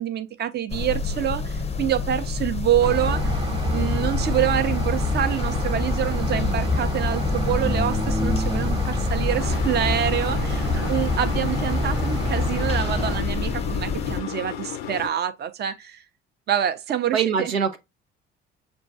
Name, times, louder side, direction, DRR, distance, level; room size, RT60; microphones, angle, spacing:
voice 1, 0.0-16.0 16.5-17.5, right 10 dB, 30° right, 0.6 m, -26 dB
sound 1, 0.7-14.2, left 4 dB, 20° left, 0.6 m, -27 dB
sound 2, 2.8-13.2, equal, 15° right, 1.0 m, -28 dB
sound 3, 9.4-15.1, left 9 dB, 70° left, 0.5 m, -33 dB
voice 2, 17.1-17.8, right 7 dB, 80° right, 0.6 m, -24 dB
6.8 x 2.3 x 2.7 m
figure-of-eight pair, 50°, 31 cm